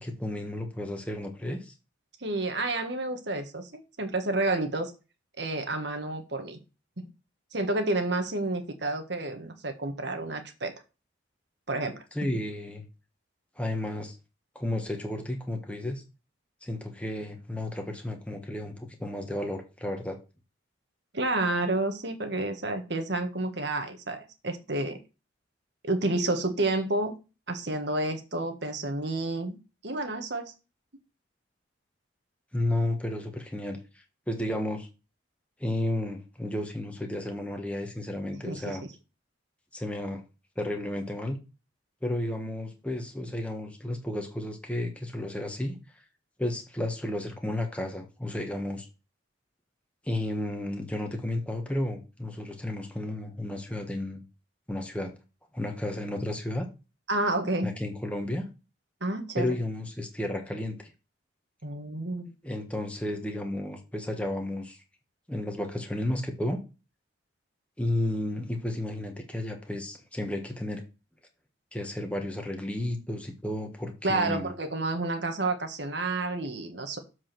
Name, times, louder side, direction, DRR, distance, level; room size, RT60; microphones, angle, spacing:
voice 1, 0.0-1.7 12.1-12.8 13.6-14.2 14.5-16.0 16.6-20.2 32.5-34.9 35.6-38.8 39.7-40.2 40.6-41.4 42.0-45.8 46.4-48.9 50.0-54.2 54.7-55.1 55.5-56.7 57.6-58.5 59.4-60.9 62.4-64.8 65.3-66.6 67.8-70.8 71.7-74.5, left 1 dB, 5° left, 3 dB, 1.4 m, -32 dB
voice 2, 2.2-4.9 5.4-6.6 7.0-7.1 7.5-10.7 11.7-12.0 21.1-25.0 25.8-27.1 27.5-29.6 29.8-30.5 38.4-38.8 57.1-57.7 59.0-59.5 61.6-62.3 74.0-77.0, right 2 dB, 60° right, 6 dB, 1.6 m, -30 dB
7.4 x 4.7 x 6.0 m, 0.30 s
head